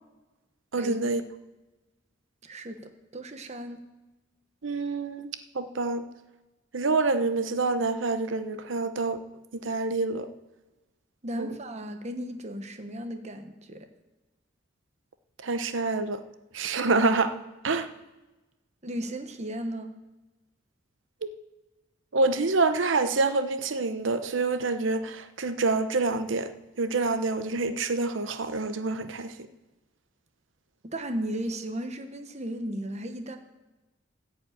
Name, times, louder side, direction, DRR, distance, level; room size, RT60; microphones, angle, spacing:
voice 1, 0.7-1.2 4.6-6.0 6.7-9.2 9.5-10.3 11.4-11.5 15.4-16.2 16.5-17.4 17.6-17.9 22.1-29.3, right 3 dB, 75° right, 11 dB, 0.8 m, -27 dB
voice 2, 2.4-3.8 11.2-13.9 18.8-19.9 30.8-33.4, right 1 dB, 35° right, 6 dB, 1.1 m, -35 dB
14.0 x 5.4 x 8.8 m, 1.1 s
head